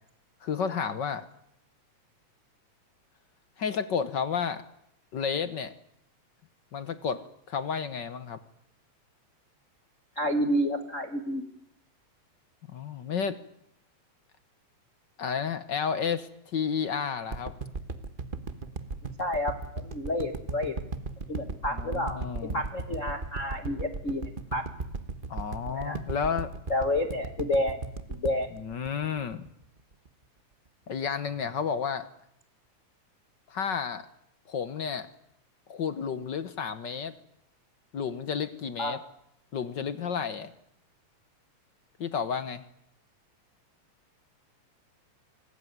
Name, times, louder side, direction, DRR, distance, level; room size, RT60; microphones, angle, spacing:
voice 1, 0.4-1.2 3.6-4.6 5.1-5.7 6.7-7.2 7.5-8.4 12.7-13.4 15.2-17.5 21.7-22.6 25.3-26.5 28.5-29.5 30.9-32.1 33.5-34.1 34.5-35.1 35.7-37.1 37.9-39.0 39.5-40.5 42.0-42.6, left 6 dB, 55° left, 13 dB, 1.3 m, -31 dB
voice 2, 10.2-11.4 19.2-20.7 21.3-22.2 22.5-24.6 25.7-26.0 26.7-27.8 28.1-28.5 38.8-39.0, left 1 dB, 35° left, 6 dB, 1.4 m, -29 dB
sound 1, 17.3-29.6 30.0-30.1, right 3 dB, 55° right, 0.5 m, -36 dB
25.0 x 19.0 x 9.6 m, 0.76 s
omnidirectional pair, 3.3 m